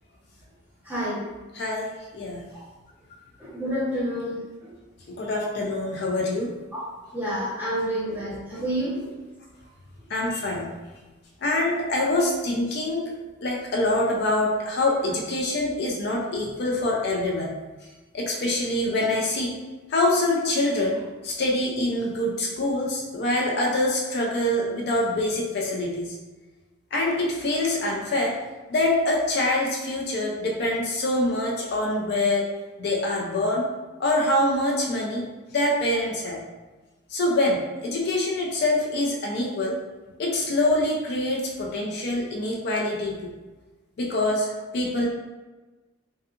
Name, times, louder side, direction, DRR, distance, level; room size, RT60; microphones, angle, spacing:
voice 1, 0.8-1.2 3.4-4.7 7.1-9.1, equal, 10° right, -8 dB, 0.7 m, -29 dB
voice 2, 1.5-2.4 5.2-6.5 10.1-10.7 11.4-13.1 13.4-17.5 18.1-19.6 19.9-26.1 26.9-28.4 28.7-32.5 32.8-33.7 34.0-36.4 37.1-39.8 40.2-43.3 44.0-44.5 44.7-45.1, left 1 dB, 50° left, -2 dB, 0.4 m, -25 dB
2.6 x 2.4 x 2.4 m, 1.2 s
head